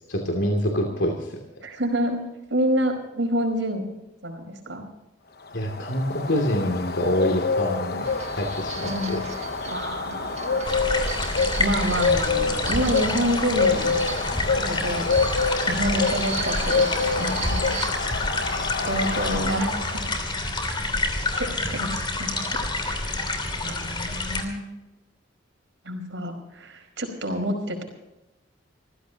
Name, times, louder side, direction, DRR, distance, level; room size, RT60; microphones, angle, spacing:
voice 1, 0.1-1.4 5.5-8.1 8.3-9.2, equal, 75° left, 1 dB, 2.8 m, -26 dB
voice 2, 1.6-3.9 4.2-4.8 8.8-9.3 9.7-10.7 11.6-15.1 15.7-17.7 18.8-20.0 20.6-20.8 21.3-23.3 23.6-24.6 25.8-27.8, equal, 75° right, 5 dB, 4.9 m, -28 dB
Bird, 5.5-20.2, left 4 dB, 55° left, 1.0 m, -27 dB
sound 1, 8.0-17.9, right 5 dB, 35° right, 1.6 m, -37 dB
sound 2, 10.6-24.4, left 2 dB, 25° left, 2.9 m, -28 dB
26.5 x 15.5 x 2.9 m, 0.96 s
head